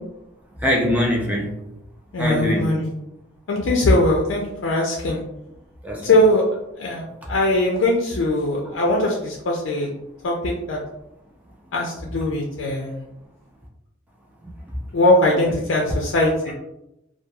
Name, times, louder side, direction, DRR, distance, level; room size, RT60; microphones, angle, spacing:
voice 1, 0.6-1.5 2.2-2.7 5.8-6.1, left 1 dB, 10° right, -2 dB, 0.5 m, -22 dB
voice 2, 2.1-2.9 3.5-5.2 6.0-6.4 6.8-9.9 10.2-10.8 11.7-13.0 14.9-16.5, left 1 dB, 70° left, -1 dB, 0.4 m, -20 dB
2.9 x 2.2 x 2.3 m, 0.86 s
head